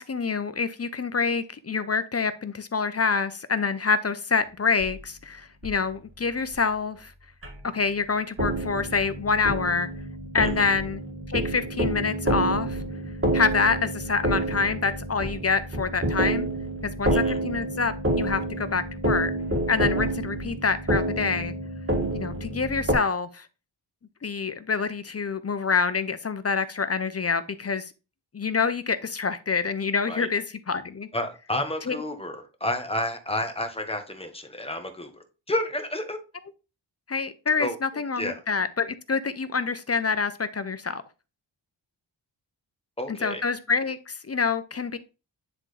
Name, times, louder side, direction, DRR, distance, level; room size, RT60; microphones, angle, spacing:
voice 1, 0.0-7.1 7.7-9.9 10.3-11.0 11.3-12.8 13.3-16.5 16.8-19.3 19.7-21.5 22.1-23.5 24.2-27.9 28.3-31.1 31.9-32.0 37.1-41.0 43.1-45.0, left 5 dB, 35° left, 12 dB, 0.6 m, -26 dB
sound 1, 4.8-5.0 5.6-5.7 6.5-6.6 7.4-7.6 8.4-22.9, right 1 dB, 30° right, 2.1 m, -28 dB
voice 2, 31.1-36.2 37.6-38.4 43.0-43.4, left 1 dB, 15° left, 5 dB, 1.3 m, -31 dB
9.8 x 3.7 x 3.3 m, 0.31 s
wide cardioid pair, 80°, 44 cm